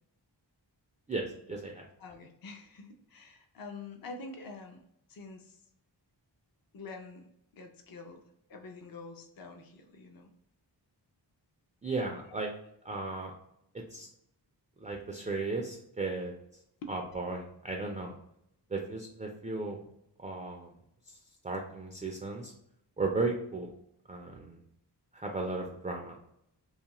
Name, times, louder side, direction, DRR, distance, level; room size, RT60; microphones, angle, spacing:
voice 1, 1.1-1.8 11.8-12.5 12.8-13.3 13.7-14.1 14.8-16.3 16.9-18.2 18.7-19.8 20.2-20.7 21.1-21.2 21.4-22.5 23.0-23.7 24.1-24.6 25.1-26.2, right 3 dB, 20° right, 1 dB, 0.3 m, -35 dB
voice 2, 2.0-4.8 5.1-5.6 6.7-7.3 7.5-8.2 8.5-10.3 16.8-16.9, left 3 dB, 55° left, 4 dB, 0.5 m, -46 dB
2.6 x 2.4 x 2.9 m, 0.75 s
wide cardioid pair, 80°, 42 cm